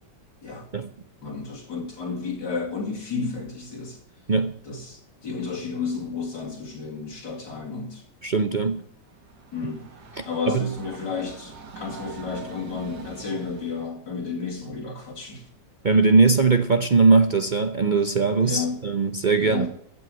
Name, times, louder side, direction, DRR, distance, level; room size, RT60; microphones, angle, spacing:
voice 1, 1.2-4.0 4.6-8.0 9.5-9.9 10.2-15.5 18.4-18.8 19.4-19.7, left 5 dB, 75° left, 3.3 m, -32 dB
voice 2, 8.2-8.8 10.1-10.7 15.8-19.7, right 4 dB, 45° right, 0.6 m, -20 dB
Train, 9.0-13.9, right 5 dB, 65° right, 2.3 m, -43 dB
15.0 x 6.3 x 9.0 m
omnidirectional pair, 1.9 m